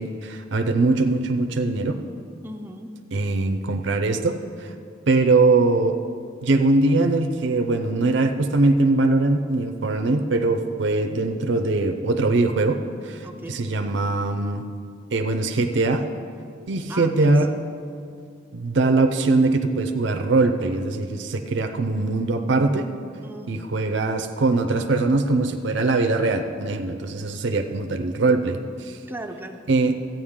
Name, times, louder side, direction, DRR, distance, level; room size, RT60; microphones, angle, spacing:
voice 1, 0.0-2.0 3.1-4.7 5.1-6.0 6.4-14.6 15.1-16.1 16.7-17.5 18.5-22.9 23.5-29.0 29.7-30.0, right 3 dB, 70° right, 6 dB, 0.5 m, -22 dB
voice 2, 2.4-2.9 13.2-13.6 16.9-17.4 23.2-23.7 29.1-29.6, right 1 dB, 10° right, 5 dB, 0.5 m, -37 dB
13.0 x 9.0 x 3.6 m, 2.4 s
head